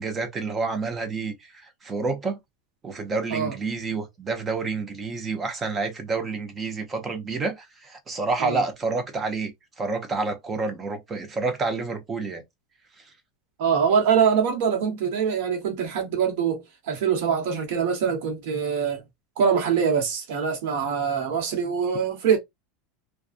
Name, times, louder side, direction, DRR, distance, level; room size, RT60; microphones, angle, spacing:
voice 1, 0.0-2.4 2.8-12.4, right 3 dB, 20° right, 0.6 m, -29 dB
voice 2, 13.6-19.0 19.4-22.4, right 7 dB, 65° right, 1.1 m, -24 dB
2.5 x 2.3 x 2.4 m
supercardioid pair, 150°, 0 cm